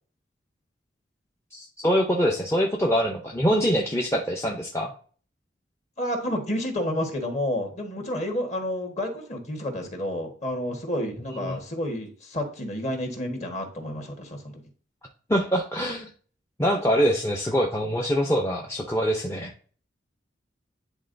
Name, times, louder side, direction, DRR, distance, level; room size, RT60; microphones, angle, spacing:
voice 1, 1.5-4.9 11.3-11.6 15.3-16.1 16.6-19.5, equal, 15° left, 0 dB, 0.5 m, -24 dB
voice 2, 6.0-14.6, left 1 dB, 35° left, 2 dB, 1.4 m, -30 dB
9.8 x 3.7 x 2.6 m, 0.43 s
head